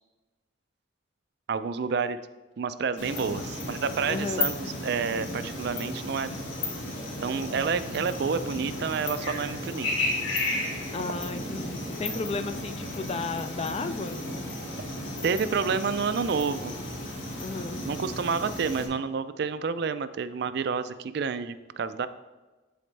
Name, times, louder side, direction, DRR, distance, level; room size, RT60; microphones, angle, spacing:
voice 1, 1.5-2.2 2.6-6.3 7.2-9.9 10.3-10.4 12.1-12.2 15.2-16.8 17.8-22.1, right 5 dB, 55° right, 12 dB, 0.3 m, -29 dB
sound 1, 3.0-18.9, left 2 dB, 75° left, 1.8 m, -34 dB
voice 2, 4.1-4.5 10.9-14.2 17.4-17.8, left 3 dB, 30° left, 10 dB, 0.3 m, -33 dB
12.5 x 4.3 x 3.2 m, 1.2 s
head